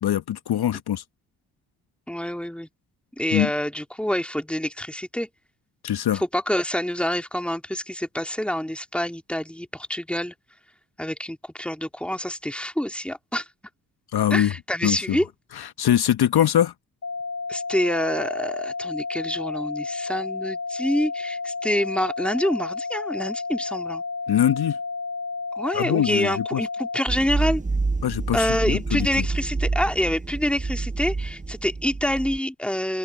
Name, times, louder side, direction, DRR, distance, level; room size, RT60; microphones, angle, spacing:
voice 1, 0.0-1.0 3.3-3.5 5.8-6.2 14.1-14.5 14.8-15.2 15.5-16.7 24.3-24.8 25.7-26.6 28.0-29.3, left 10 dB, 55° left, 1.6 m, -23 dB
voice 2, 2.1-2.7 3.2-5.3 6.2-10.3 11.0-13.4 14.3-15.3 17.5-24.0 25.5-27.6 28.3-33.0, equal, ahead, 3.2 m, -27 dB
sound 1, 17.0-27.0, left 4 dB, 30° left, 1.1 m, -31 dB
sound 2, 27.1-32.4, right 3 dB, 15° right, 1.1 m, -28 dB
open air
hypercardioid pair, 40°, 44 cm